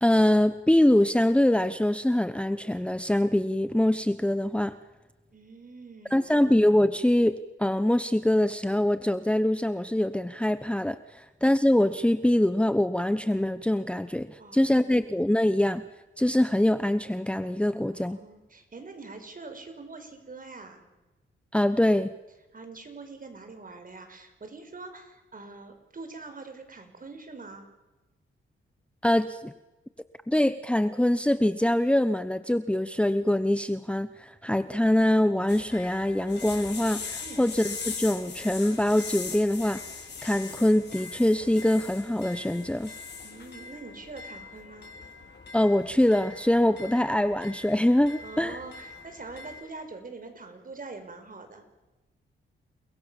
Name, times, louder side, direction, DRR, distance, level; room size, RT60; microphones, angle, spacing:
voice 1, 0.0-4.7 6.1-15.8 16.2-18.2 21.5-22.1 29.0-29.5 30.3-39.8 40.2-42.9 45.5-48.6, left 1 dB, 5° left, 12 dB, 1.1 m, -24 dB
voice 2, 5.3-6.2 14.4-14.7 18.0-20.8 22.5-27.7 37.2-37.5 43.2-44.9 48.2-51.6, right 3 dB, 40° right, 7 dB, 5.9 m, -44 dB
sound 1, 35.5-49.6, left 5 dB, 55° left, 6.1 m, -41 dB
30.0 x 21.0 x 7.4 m, 1.1 s
cardioid pair, 75°, 21 cm